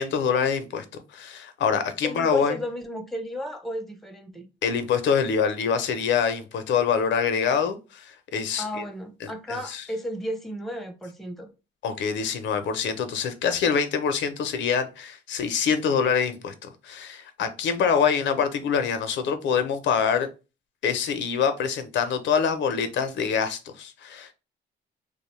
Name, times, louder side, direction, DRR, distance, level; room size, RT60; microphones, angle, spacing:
voice 1, 0.0-2.6 4.6-8.8 9.2-9.8 11.8-20.3 20.8-24.3, left 6 dB, 70° left, 0.5 m, -25 dB
voice 2, 2.0-4.5 8.6-11.5, equal, ahead, 0.5 m, -34 dB
2.6 x 2.0 x 3.0 m
cardioid pair, 90°, 20 cm